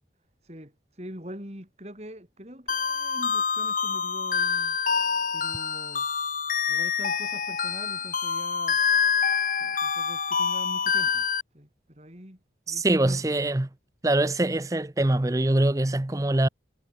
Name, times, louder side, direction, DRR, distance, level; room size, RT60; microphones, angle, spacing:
voice 1, 0.4-4.8 5.3-6.1 6.7-8.8 9.6-11.3 11.5-12.4 12.7-13.3, equal, 35° right, 5.5 m, -43 dB
sound 1, 2.7-11.4, left 6 dB, 45° left, 1.7 m, -26 dB
voice 2, 12.7-13.7 14.0-16.5, right 1 dB, 20° right, 0.6 m, -23 dB
head